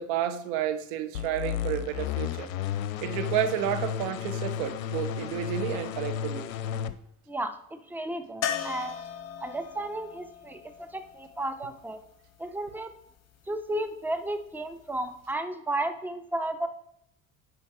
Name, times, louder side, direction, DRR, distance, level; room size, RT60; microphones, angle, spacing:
voice 1, 0.0-2.5 3.0-6.5, right 10 dB, 55° right, 10 dB, 0.9 m, -31 dB
sound 1, 1.1-6.9, left 8 dB, 65° left, 0.6 m, -33 dB
voice 2, 7.3-9.0 9.4-12.0 12.4-12.9 13.5-16.7, right 1 dB, 5° right, 8 dB, 0.7 m, -33 dB
sound 2, 8.4-12.3 15.0-15.1 15.3-15.4, left 8 dB, 35° left, 0.9 m, -37 dB
9.5 x 3.3 x 4.9 m, 0.72 s
figure-of-eight pair, 60°, 43 cm